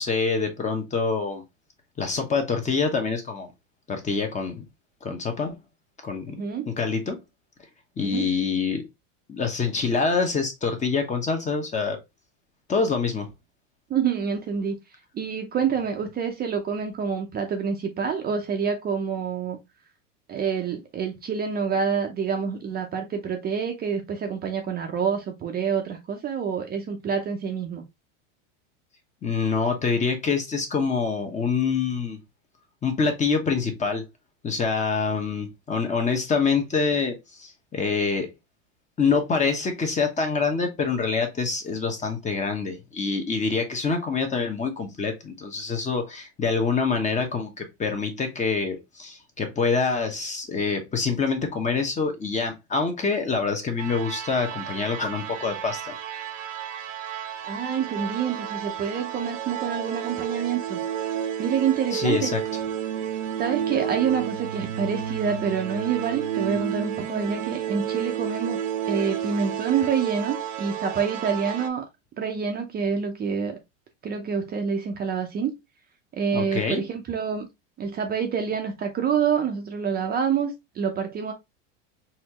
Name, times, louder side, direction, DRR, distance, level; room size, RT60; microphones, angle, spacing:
voice 1, 0.0-1.4 2.0-3.5 3.9-4.6 5.0-5.6 6.0-6.4 6.7-7.2 8.0-8.8 9.3-12.0 12.7-13.3 29.2-32.2 32.8-34.0 34.4-38.3 39.0-55.9 61.9-62.4 76.3-76.8, left 5 dB, 20° left, 1.0 m, -26 dB
voice 2, 6.3-6.7 8.0-8.3 13.9-14.8 15.1-19.6 20.3-27.8 57.4-60.8 61.4-62.3 63.4-68.6 68.9-71.8 72.2-73.6 74.0-75.5 76.1-77.5 77.8-81.3, right 6 dB, 25° right, 0.6 m, -27 dB
sound 1, 53.8-71.7, right 10 dB, 90° right, 1.0 m, -31 dB
4.2 x 2.7 x 2.9 m
supercardioid pair, 130°, 37 cm